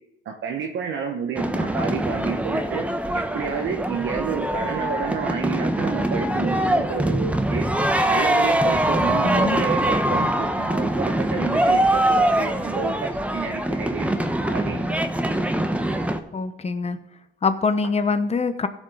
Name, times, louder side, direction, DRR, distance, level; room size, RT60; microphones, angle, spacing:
voice 1, 0.2-2.8 3.1-7.6 8.1-14.1 14.5-14.8, right 6 dB, 70° right, 2 dB, 1.1 m, -30 dB
sound 1, 1.4-16.2, right 1 dB, 5° right, 1.0 m, -23 dB
voice 2, 9.2-9.6 16.3-17.0 17.4-18.7, left 4 dB, 30° left, 10 dB, 1.0 m, -24 dB
16.0 x 5.4 x 4.9 m, 0.85 s
cardioid pair, 90°, 20 cm